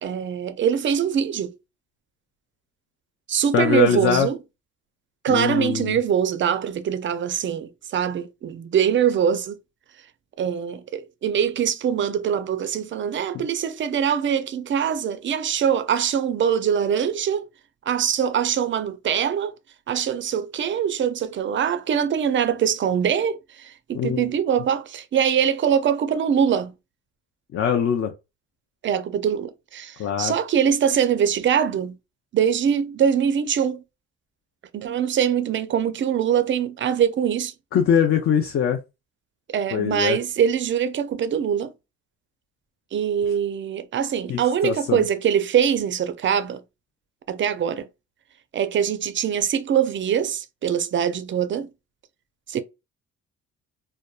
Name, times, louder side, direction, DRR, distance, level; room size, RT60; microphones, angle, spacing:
voice 1, 0.0-1.6 3.3-4.4 5.2-9.6 10.4-17.5 17.9-19.5 19.9-26.7 28.8-32.0 32.3-33.8 34.7-37.5 39.5-41.7 42.9-46.6 47.3-47.9 48.5-51.7 52.5-52.6, right 8 dB, 40° right, 0.4 m, -23 dB
voice 2, 3.5-4.3 5.3-6.0 23.9-24.3 27.5-28.1 30.0-30.3 37.7-38.8 39.7-40.2 44.3-45.0, left 8 dB, 50° left, 0.4 m, -22 dB
2.7 x 2.2 x 2.2 m
cardioid pair, 90°, 30 cm